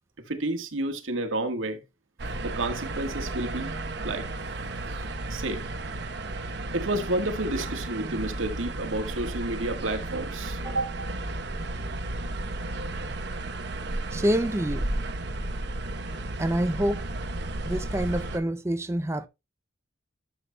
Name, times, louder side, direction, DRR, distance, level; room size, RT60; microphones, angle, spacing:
voice 1, 0.3-1.8 2.4-3.7 4.0-4.3 4.8-5.6 6.7-11.1, right 2 dB, 85° right, 1.4 m, -30 dB
sound 1, 2.2-18.4, right 2 dB, 60° right, 0.9 m, -33 dB
voice 2, 14.1-14.9 16.4-17.1 17.6-19.3, right 1 dB, 15° right, 0.4 m, -27 dB
12.0 x 7.1 x 2.2 m
head